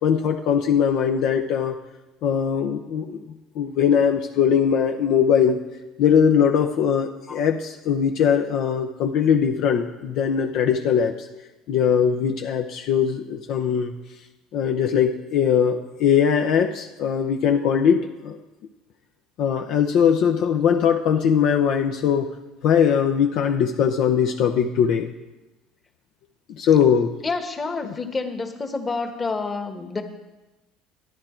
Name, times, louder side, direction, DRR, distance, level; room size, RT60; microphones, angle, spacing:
voice 1, 0.0-1.8 2.2-3.2 3.6-5.6 6.0-11.1 11.7-13.9 14.5-18.4 19.4-22.3 22.6-25.1 26.6-27.1, left 7 dB, 65° left, 4 dB, 0.7 m, -20 dB
voice 2, 27.2-30.0, left 4 dB, 25° left, 6 dB, 1.3 m, -28 dB
11.0 x 9.6 x 4.5 m, 1.1 s
supercardioid pair, 80°, 0 cm